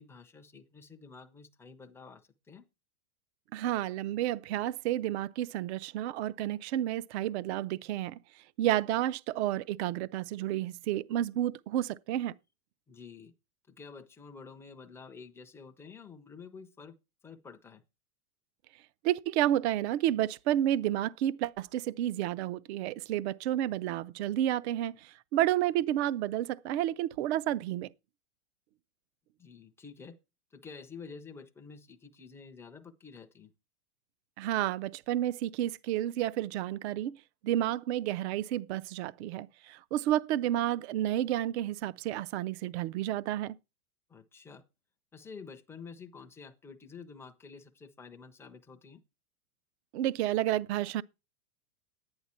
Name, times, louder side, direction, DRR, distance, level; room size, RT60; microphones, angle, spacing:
voice 1, 0.0-2.6 12.9-13.3 13.7-17.0 17.2-17.8 29.4-30.2 30.5-33.5 44.1-44.6 45.1-49.0, left 5 dB, 5° left, 0.5 m, -49 dB
voice 2, 3.5-12.3 19.0-27.9 34.4-37.2 37.4-43.6 49.9-51.0, right 13 dB, 50° right, 0.5 m, -31 dB
11.0 x 9.7 x 4.3 m
supercardioid pair, 150°, 43 cm